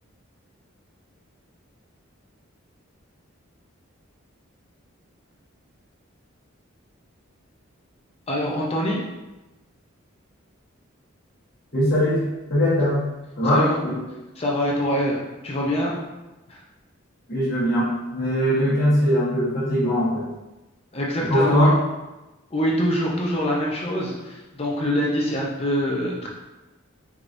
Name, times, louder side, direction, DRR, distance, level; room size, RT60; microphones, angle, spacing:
voice 1, 8.3-9.0 13.4-13.8 14.4-15.2 15.4-15.9 16.5-16.6 20.9-21.7 22.5-26.3, equal, 30° left, -3 dB, 0.6 m, -24 dB
voice 2, 11.7-12.2 12.5-13.0 13.4-14.0 17.3-20.3 21.3-21.8, equal, 45° left, -10 dB, 1.3 m, -20 dB
4.7 x 2.9 x 2.6 m, 1.1 s
head